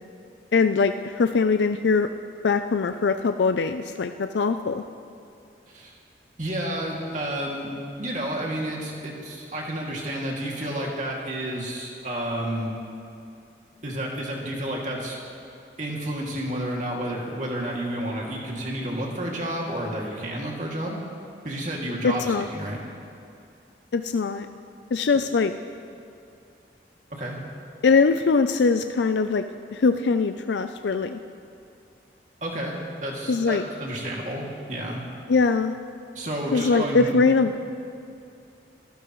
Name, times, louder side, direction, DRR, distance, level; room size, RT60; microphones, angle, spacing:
voice 1, 0.5-2.1 2.4-4.8 22.0-22.5 23.9-24.5 24.9-25.5 27.8-29.4 29.7-31.2 33.3-33.6 35.3-35.7 36.5-37.5, left 4 dB, 80° left, 8 dB, 0.4 m, -22 dB
voice 2, 6.4-7.7 8.0-12.7 13.8-15.2 15.8-21.0 21.4-22.8 27.1-27.4 32.4-35.0 36.1-37.2, right 1 dB, 45° right, -2 dB, 2.4 m, -30 dB
28.0 x 14.0 x 3.1 m, 2.5 s
head